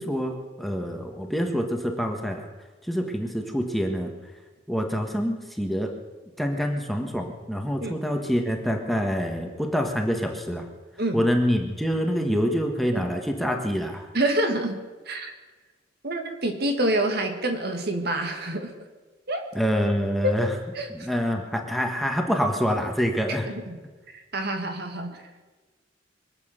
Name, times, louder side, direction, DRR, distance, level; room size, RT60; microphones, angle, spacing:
voice 1, 0.0-2.4 2.8-4.1 4.7-5.9 6.4-10.7 11.1-14.1 19.5-20.5 20.9-23.5, equal, ahead, 2 dB, 1.5 m, -26 dB
voice 2, 14.1-15.3 16.0-18.7 19.3-19.4 20.2-20.4 20.7-20.9 23.5-23.8 24.1-25.5, right 1 dB, 60° right, 5 dB, 1.9 m, -27 dB
24.0 x 8.4 x 6.7 m, 1.3 s
head